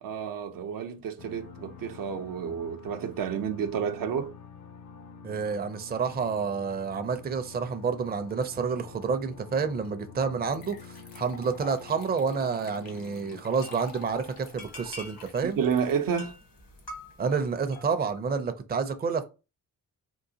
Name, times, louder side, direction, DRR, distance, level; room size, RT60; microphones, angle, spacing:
voice 1, 0.0-4.3 15.4-16.3, right 7 dB, 75° right, 0.6 m, -30 dB
sound 1, 1.2-13.4, left 6 dB, 55° left, 0.6 m, -48 dB
voice 2, 5.2-15.6 17.2-19.2, right 5 dB, 30° right, 0.5 m, -29 dB
sound 2, 9.8-9.9 10.5-16.8, left 5 dB, 90° left, 0.8 m, -47 dB
sound 3, 13.6-18.2, left 1 dB, 70° left, 1.3 m, -46 dB
3.7 x 2.4 x 2.7 m
cardioid pair, 75°, 34 cm